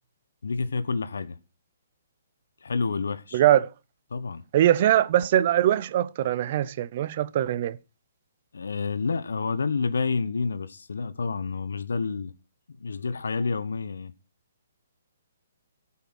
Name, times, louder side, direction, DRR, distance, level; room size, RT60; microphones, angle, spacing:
voice 1, 0.4-1.4 2.6-3.4 4.1-4.4 8.5-12.3 12.8-14.1, left 4 dB, 90° left, 1.1 m, -29 dB
voice 2, 3.3-3.7 4.5-7.8, right 12 dB, 40° right, 0.7 m, -22 dB
13.5 x 5.7 x 6.2 m
hypercardioid pair, 155°, 0 cm